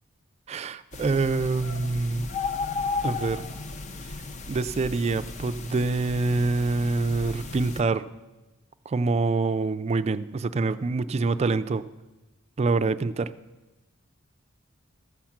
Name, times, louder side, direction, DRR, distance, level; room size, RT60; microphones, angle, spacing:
voice 1, 0.5-2.3 3.0-3.5 4.5-8.0 8.9-11.8 12.6-13.3, right 3 dB, 30° right, 12 dB, 0.3 m, -26 dB
sound 1, 0.9-7.8, left 4 dB, 35° left, 0.5 m, -34 dB
13.5 x 7.5 x 5.8 m, 1.1 s
head